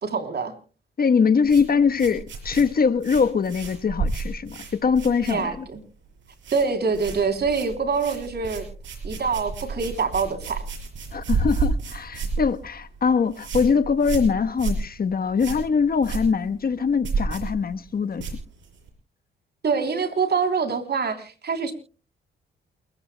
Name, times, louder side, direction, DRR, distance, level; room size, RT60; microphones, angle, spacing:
voice 1, 0.0-0.5 5.2-5.8 6.5-8.7 9.0-10.6 19.6-21.7, right 5 dB, 55° right, 3.4 m, -25 dB
voice 2, 1.0-5.6 11.1-18.3, left 5 dB, 45° left, 1.2 m, -22 dB
sound 1, 1.4-5.8 6.1-6.7 6.9-18.9, right 4 dB, 70° right, 5.8 m, -31 dB
28.5 x 15.5 x 2.2 m
supercardioid pair, 55°, 21 cm